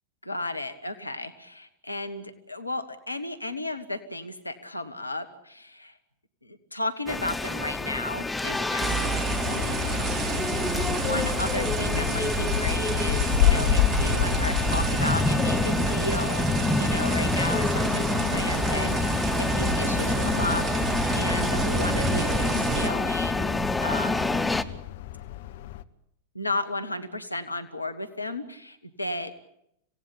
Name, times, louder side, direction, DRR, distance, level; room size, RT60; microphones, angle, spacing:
voice 1, 0.2-5.9 6.4-9.8 10.8-24.4 26.3-29.3, left 2 dB, 85° left, 10 dB, 1.4 m, -34 dB
sound 1, 7.1-24.6, left 3 dB, 5° left, 1.0 m, -28 dB
sound 2, 8.8-22.9, right 4 dB, 25° right, 2.2 m, -29 dB
sound 3, 9.3-25.8, left 12 dB, 55° left, 0.9 m, -31 dB
26.5 x 17.5 x 8.8 m, 0.78 s
figure-of-eight pair, 90°, 0 cm